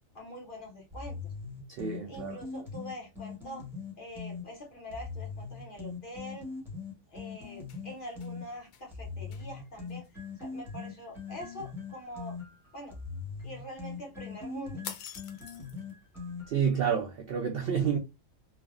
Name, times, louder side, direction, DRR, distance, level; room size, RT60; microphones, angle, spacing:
voice 1, 0.1-1.3 2.1-3.6 4.0-6.5 7.1-12.4 12.7-13.0 13.4-14.8, equal, 45° left, 0.8 m, -44 dB
sound 1, 0.9-4.4 4.9-8.4 8.9-16.7, left 5 dB, ahead, 0.7 m, -41 dB
voice 2, 1.7-2.4 16.5-18.0, right 7 dB, 70° right, 0.5 m, -29 dB
sound 2, 7.4-8.3 8.7-8.9 9.3-9.5 9.9-10.1 14.8-15.9, left 8 dB, 80° left, 1.0 m, -45 dB
3.3 x 2.1 x 2.4 m
omnidirectional pair, 1.5 m